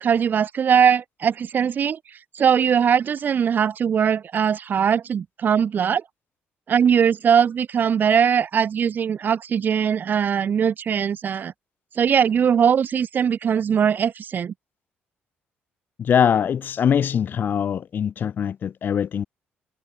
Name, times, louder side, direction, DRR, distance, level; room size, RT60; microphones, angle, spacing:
voice 1, 0.0-2.0 2.3-6.0 6.7-11.5 12.0-14.5, right 7 dB, 45° right, 0.6 m, -20 dB
voice 2, 16.0-19.2, left 8 dB, 50° left, 0.5 m, -22 dB
cardioid pair, 95°, 4 cm